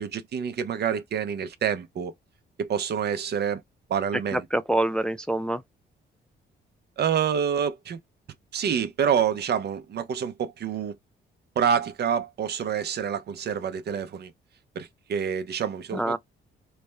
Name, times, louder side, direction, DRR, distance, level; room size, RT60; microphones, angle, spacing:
voice 1, 0.0-2.1 2.6-3.6 3.9-4.4 7.0-8.0 8.5-10.9 11.6-14.3 14.8-16.2, right 7 dB, 55° right, 0.7 m, -27 dB
voice 2, 4.1-5.6 15.9-16.2, right 1 dB, 5° left, 0.3 m, -26 dB
3.2 x 2.1 x 3.3 m
cardioid pair, 90°, 20 cm